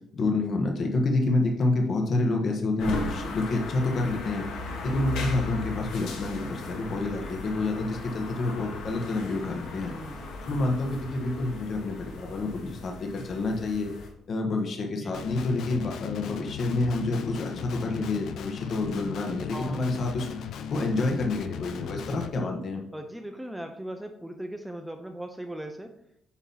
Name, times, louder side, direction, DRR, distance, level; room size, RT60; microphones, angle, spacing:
voice 1, 0.1-4.5 4.8-9.9 10.4-13.9 14.3-20.3 20.7-22.8, left 2 dB, 45° left, 2 dB, 1.1 m, -28 dB
sound 1, 2.8-14.1, left 3 dB, 80° left, 1.4 m, -37 dB
voice 2, 7.0-7.3 9.8-10.3 15.0-15.4 19.5-19.8 22.9-25.9, right 1 dB, 5° right, 5 dB, 0.5 m, -39 dB
Guitar, 15.1-22.3, left 7 dB, 65° left, 0.5 m, -37 dB
8.3 x 3.0 x 5.4 m, 0.75 s
cardioid pair, 130°, 0 cm